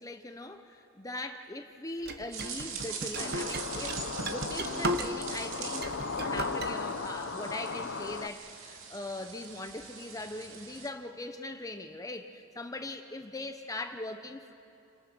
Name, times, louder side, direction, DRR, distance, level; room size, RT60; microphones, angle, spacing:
voice 1, 0.0-14.5, left 2 dB, 15° left, 6 dB, 0.9 m, -40 dB
sound 1, 2.0-5.4 5.7-6.7, right 1 dB, 50° right, 1.2 m, -36 dB
sound 2, 2.3-10.9, right 6 dB, 80° right, 2.4 m, -43 dB
sound 3, 3.1-8.3, left 4 dB, 60° left, 0.7 m, -36 dB
30.0 x 25.0 x 6.2 m, 2.8 s
head